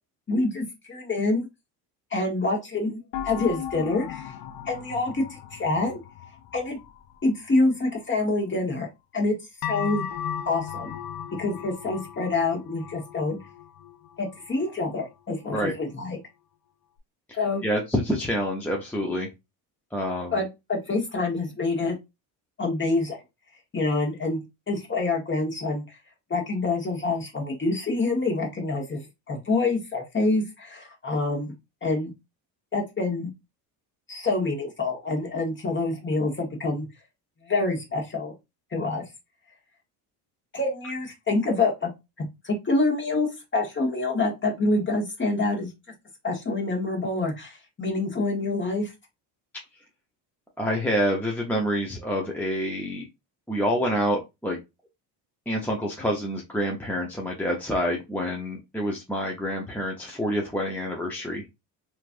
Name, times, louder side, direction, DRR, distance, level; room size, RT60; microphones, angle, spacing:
voice 1, 0.3-1.5 2.1-4.3 4.7-6.0 6.5-6.8 7.2-8.9 9.1-9.4 9.7-10.0 10.4-10.9 11.4-13.4 14.2-16.2 17.3-17.7 20.3-22.0 22.6-23.2 23.7-25.8 26.3-31.5 31.8-32.1 32.7-33.3 34.1-36.9 37.4-38.3 38.7-39.0 40.5-41.9 42.2-45.7 46.2-48.9, left 2 dB, 25° left, 1 dB, 1.3 m, -26 dB
sound 1, 3.1-7.6 9.6-15.0 15.4-15.5, left 9 dB, 55° left, 0.5 m, -37 dB
voice 2, 17.6-19.3 19.9-20.4 50.6-53.0 53.5-54.6 55.5-61.4, equal, 5° left, -1 dB, 0.7 m, -27 dB
3.0 x 2.6 x 2.5 m, 0.22 s
supercardioid pair, 75°, 45 cm